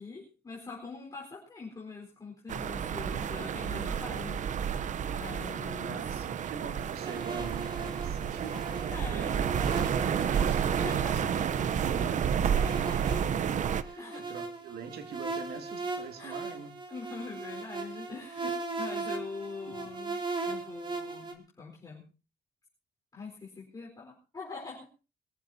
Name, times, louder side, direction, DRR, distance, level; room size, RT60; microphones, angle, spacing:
voice 1, 0.0-4.7 5.1-6.0 8.9-9.4 10.7-11.5 14.0-14.3 16.2-16.4 16.9-20.2 20.4-22.1 23.1-24.9, left 4 dB, 20° left, 4.5 m, -43 dB
sound 1, 2.5-13.8, right 8 dB, 50° right, 0.8 m, -30 dB
voice 2, 5.8-16.7 19.7-19.8, right 7 dB, 80° right, 2.6 m, -44 dB
sound 2, 7.0-21.3, right 3 dB, 30° right, 2.6 m, -39 dB
23.5 x 14.5 x 2.8 m
cardioid pair, 155°, 16 cm